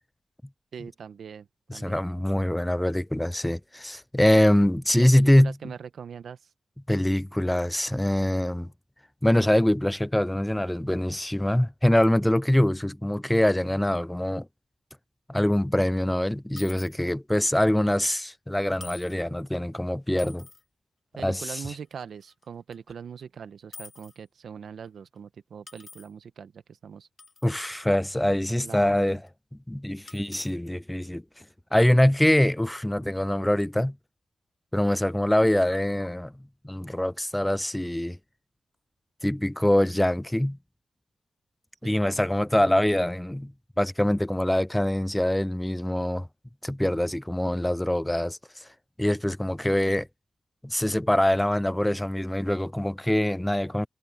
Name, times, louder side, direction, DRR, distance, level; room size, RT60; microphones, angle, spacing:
voice 1, 0.7-2.0 4.9-6.5 21.2-27.1 28.5-29.2 41.8-42.0, right 7 dB, 80° right, 1.1 m, -41 dB
voice 2, 1.7-5.5 6.9-8.7 9.2-14.5 15.3-20.5 21.2-21.6 27.4-29.2 29.7-31.2 31.7-33.9 34.7-36.3 36.6-38.2 39.2-40.6 41.8-43.5 43.8-46.3 46.6-48.7 49.0-50.1 50.6-53.9, left 1 dB, 10° left, 0.4 m, -24 dB
sound 1, 16.0-16.1 16.6-16.9 18.0-18.1 18.8-19.2 20.1-20.6 21.2-21.4 21.9-22.4 22.7-22.8 23.2-23.3 23.7-24.2 24.9-25.0 25.7-26.1 27.2-27.5 28.0-28.1 29.3-29.4 30.1-30.5, left 4 dB, 55° left, 1.9 m, -47 dB
cardioid pair, 65°, 0 cm